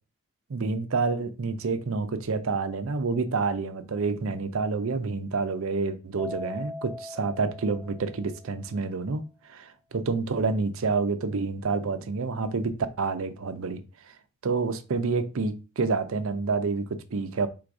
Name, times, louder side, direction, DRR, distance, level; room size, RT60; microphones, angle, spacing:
voice 1, 0.5-9.2 9.5-12.7 13.0-13.8 14.4-17.5, right 4 dB, 65° right, 0.5 m, -28 dB
Keyboard (musical), 6.2-8.7, left 1 dB, 5° left, 1.2 m, -40 dB
3.8 x 2.6 x 4.7 m
head